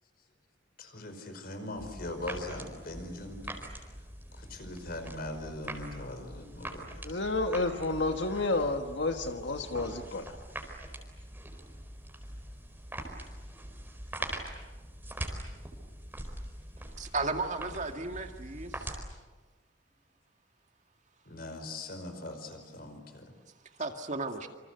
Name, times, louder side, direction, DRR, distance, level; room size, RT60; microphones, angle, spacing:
voice 1, 0.8-3.5 4.3-6.9 21.3-23.3, left 1 dB, 55° left, 7 dB, 5.1 m, -41 dB
sound 1, 1.7-19.0, right 1 dB, 10° right, 4.5 m, -43 dB
voice 2, 7.0-10.4, left 2 dB, 70° left, 6 dB, 1.5 m, -30 dB
voice 3, 17.0-18.9 23.8-24.5, right 3 dB, 40° right, 5 dB, 2.2 m, -34 dB
28.0 x 26.5 x 8.0 m, 1.3 s
head